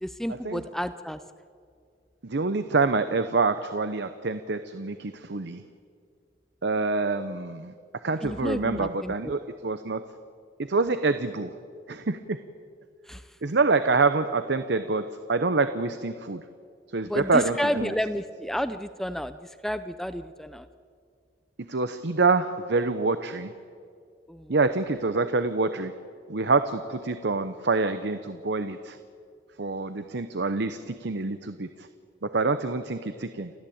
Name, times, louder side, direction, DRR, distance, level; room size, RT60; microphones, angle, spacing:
voice 1, 0.0-1.2 8.2-9.1 13.1-13.3 17.1-20.7 24.3-24.5, equal, ahead, 11 dB, 0.5 m, -31 dB
voice 2, 2.2-5.6 6.6-7.7 8.0-10.0 10.6-11.6 11.9-12.4 13.4-16.5 16.9-17.9 21.6-23.5 24.5-25.9 26.3-29.0 29.6-31.9 32.2-33.5, right 3 dB, 65° right, 11 dB, 0.8 m, -26 dB
29.5 x 13.5 x 8.7 m, 2.2 s
head